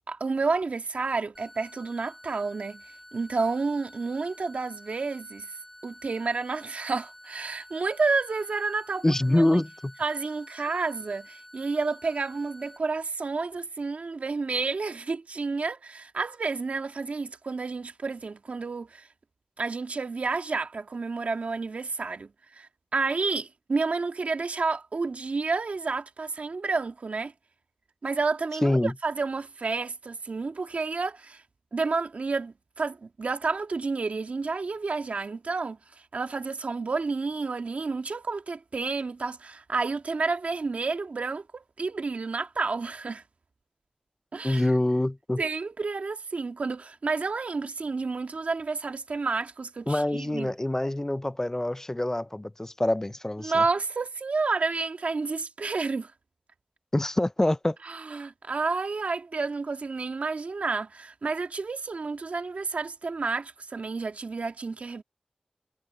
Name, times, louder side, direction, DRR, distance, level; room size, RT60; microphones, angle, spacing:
voice 1, 0.1-2.8 3.1-5.5 5.8-9.0 9.3-9.6 10.0-19.1 19.6-27.3 28.0-31.4 31.7-35.8 36.1-43.2 44.3-44.7 45.4-50.5 53.4-56.1 57.8-65.0, right 4 dB, 75° right, 1.8 m, -30 dB
sound 1, 1.3-12.8, equal, 5° left, 5.4 m, -50 dB
voice 2, 9.0-9.9 28.6-28.9 44.4-45.4 49.9-53.6 56.9-57.8, left 1 dB, 20° left, 0.4 m, -25 dB
wide cardioid pair, 55°, 2 cm